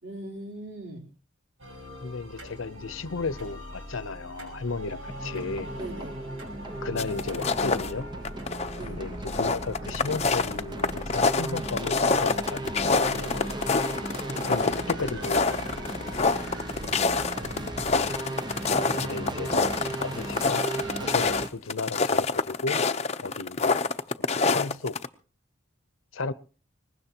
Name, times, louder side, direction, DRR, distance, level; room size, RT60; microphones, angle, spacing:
voice 1, 0.0-1.1 5.7-6.2 8.7-9.1 16.2-16.8, right 1 dB, 65° right, 3.9 m, -41 dB
sound 1, 1.6-21.4, equal, 85° right, 6.5 m, -42 dB
voice 2, 2.0-5.7 6.8-8.1 8.9-13.6 14.4-15.9 19.0-19.5 20.0-20.6 21.0-22.8 23.2-23.7 24.1-25.0 26.1-26.3, left 3 dB, 80° left, 0.8 m, -34 dB
sound 2, 5.1-21.5, right 2 dB, 20° right, 1.0 m, -36 dB
sound 3, 7.0-7.9 8.2-8.9 9.1-25.1, left 4 dB, 35° left, 0.8 m, -26 dB
23.0 x 20.0 x 2.9 m
head